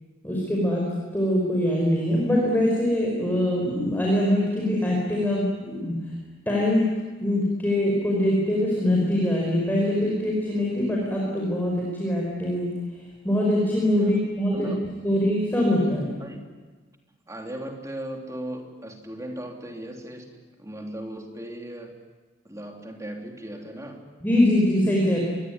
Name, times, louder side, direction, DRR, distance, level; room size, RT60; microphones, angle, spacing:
voice 1, 0.2-0.9 1.1-6.0 6.5-6.8 7.2-12.7 13.2-14.7 15.0-16.1 24.2-25.2, left 1 dB, 10° left, -3 dB, 5.3 m, -23 dB
voice 2, 17.3-21.9 22.5-24.1, right 1 dB, 15° right, 2 dB, 3.4 m, -37 dB
26.0 x 21.0 x 9.8 m, 1.4 s
head